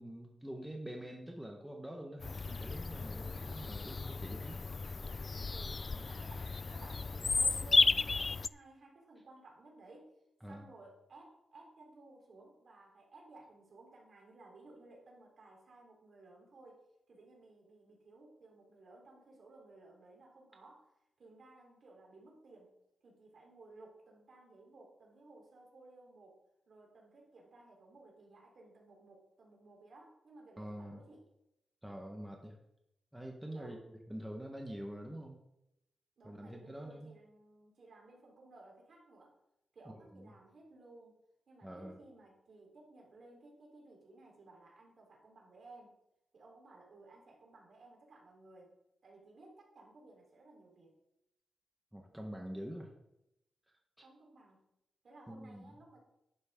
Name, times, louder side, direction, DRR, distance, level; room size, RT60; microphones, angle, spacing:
voice 1, 0.0-4.6 10.4-10.7 30.6-31.0 31.8-32.6 33.1-35.4 36.2-37.1 39.9-40.3 41.6-42.0 51.9-52.9 55.3-55.7, equal, 5° right, 1 dB, 1.4 m, -46 dB
Bird vocalization bird call bird song, 2.2-8.5, left 4 dB, 35° left, 0.3 m, -33 dB
voice 2, 5.5-10.1 10.5-22.7 23.0-26.4 26.7-31.3 33.5-33.8 36.2-39.3 39.7-41.2 41.5-45.9 46.3-48.7 49.0-51.0 54.0-54.7 55.0-56.0, right 2 dB, 55° right, -1 dB, 4.0 m, -58 dB
11.0 x 11.0 x 3.8 m, 0.85 s
cardioid pair, 105°, 0 cm